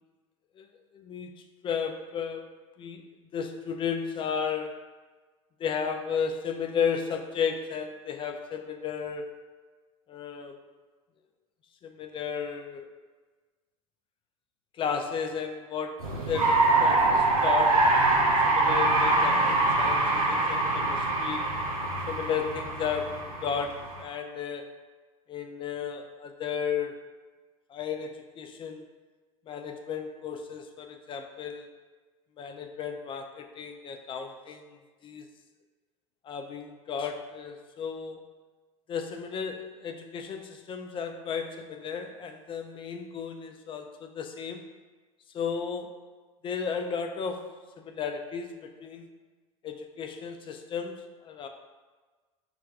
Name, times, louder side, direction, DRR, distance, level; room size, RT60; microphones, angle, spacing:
voice 1, 0.9-1.3 1.6-2.5 2.8-3.1 3.3-4.8 5.6-9.4 10.1-10.6 11.8-12.9 14.8-18.0 18.2-21.5 22.1-24.7 25.3-27.0 27.7-28.8 29.5-31.7 32.4-34.8 35.0-35.3 36.2-38.2 38.9-44.7 45.3-45.9 46.4-49.1 49.6-51.5, left 6 dB, 30° left, 6 dB, 0.4 m, -34 dB
sound 1, 16.0-24.0, right 2 dB, 90° right, 0.7 m, -24 dB
5.8 x 2.2 x 2.4 m, 1.3 s
hypercardioid pair, 80°, 17 cm